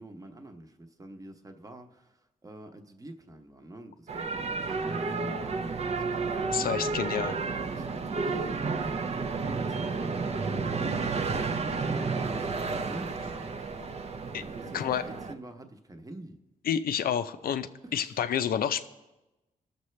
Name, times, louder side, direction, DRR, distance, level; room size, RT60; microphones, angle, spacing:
voice 1, 0.0-6.9 7.7-13.5 14.3-16.4 17.8-18.1, right 1 dB, 25° right, 5 dB, 0.9 m, -46 dB
sound 1, 4.1-15.3, right 4 dB, 45° right, 0.6 m, -31 dB
voice 2, 6.5-7.4 14.3-14.4 14.7-15.0 16.7-18.8, left 8 dB, 80° left, 11 dB, 0.5 m, -29 dB
20.0 x 6.7 x 3.2 m, 1.0 s
cardioid pair, 95°, 15 cm